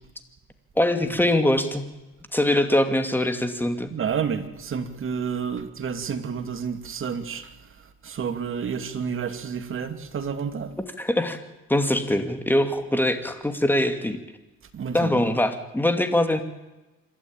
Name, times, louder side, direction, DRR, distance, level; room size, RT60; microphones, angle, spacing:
voice 1, 0.8-1.9 2.3-3.9 11.0-11.4 11.7-14.2 14.9-16.4, left 1 dB, 5° left, 8 dB, 2.5 m, -23 dB
voice 2, 3.9-7.5 8.0-10.7 14.7-15.3, right 6 dB, 45° right, 8 dB, 2.5 m, -30 dB
27.0 x 12.0 x 8.9 m, 1.0 s
cardioid pair, 100°, 30 cm